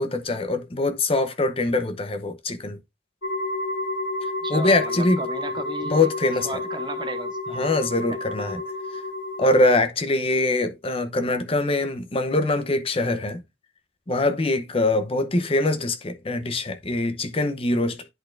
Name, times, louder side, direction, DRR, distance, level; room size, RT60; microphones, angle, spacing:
voice 1, 0.0-2.8 4.5-5.2 5.8-6.5 7.5-8.6 8.9-9.0 9.4-13.4 14.1-18.0, left 2 dB, 30° left, 0.7 m, -23 dB
sound 1, 3.2-9.8, left 2 dB, 85° left, 1.6 m, -30 dB
voice 2, 4.4-6.1 6.4-7.6 8.1-8.2, right 2 dB, 25° right, 0.7 m, -35 dB
10.5 x 4.2 x 2.5 m
head